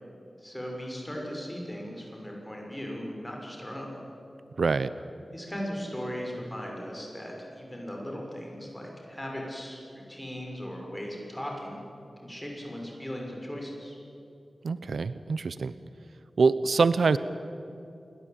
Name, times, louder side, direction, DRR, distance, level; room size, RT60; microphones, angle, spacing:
voice 1, 0.4-3.9 5.3-11.8 12.2-13.9, equal, 10° left, -1 dB, 6.8 m, -38 dB
voice 2, 4.6-4.9 14.6-15.7 16.4-17.2, right 4 dB, 85° right, 14 dB, 0.8 m, -24 dB
27.5 x 22.0 x 9.2 m, 2.7 s
wide cardioid pair, 105°, 0 cm